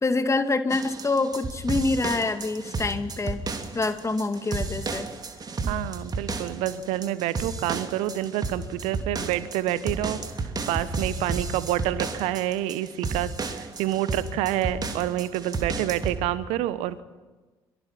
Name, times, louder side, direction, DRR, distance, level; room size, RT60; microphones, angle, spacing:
voice 1, 0.0-3.4 3.7-5.1, left 3 dB, 25° left, 9 dB, 2.1 m, -26 dB
sound 1, 0.7-16.2, right 3 dB, 35° right, 2.8 m, -32 dB
voice 2, 5.7-17.0, right 13 dB, 65° right, 16 dB, 1.0 m, -28 dB
24.5 x 24.0 x 5.9 m, 1.2 s
figure-of-eight pair, 45°, 12 cm